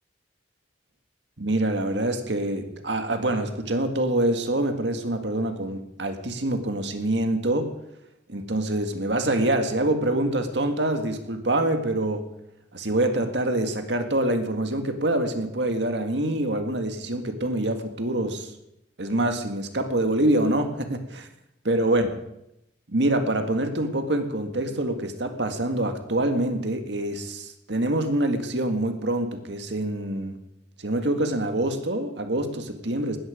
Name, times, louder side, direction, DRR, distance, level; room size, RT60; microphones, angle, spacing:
voice 1, 1.4-7.7 8.3-12.2 12.7-18.5 19.0-21.3 21.6-22.1 22.9-30.4 30.8-33.2, right 1 dB, 70° right, 6 dB, 1.9 m, -25 dB
19.0 x 14.0 x 5.1 m, 0.81 s
head